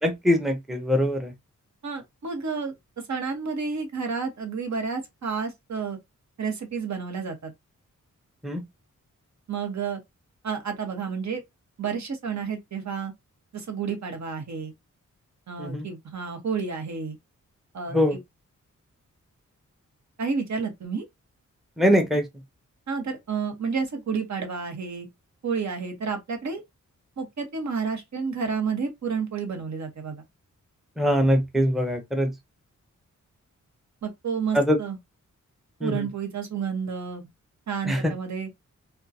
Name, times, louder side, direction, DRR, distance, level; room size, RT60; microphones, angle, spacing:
voice 1, 0.0-1.3 8.4-8.6 15.6-15.9 17.9-18.2 21.8-22.3 31.0-32.3 34.5-34.8 35.8-36.0 37.9-38.1, equal, ahead, 0.6 m, -22 dB
voice 2, 1.8-2.7 3.1-6.0 6.4-7.5 9.5-10.0 10.4-11.4 11.8-13.1 13.5-14.7 15.5-17.2 17.7-18.2 20.2-21.1 22.9-25.1 25.4-26.6 27.2-30.2 34.0-35.0 35.8-37.3 37.7-38.5, right 5 dB, 65° right, 1.1 m, -30 dB
3.5 x 2.3 x 2.7 m
wide cardioid pair, 120°, 31 cm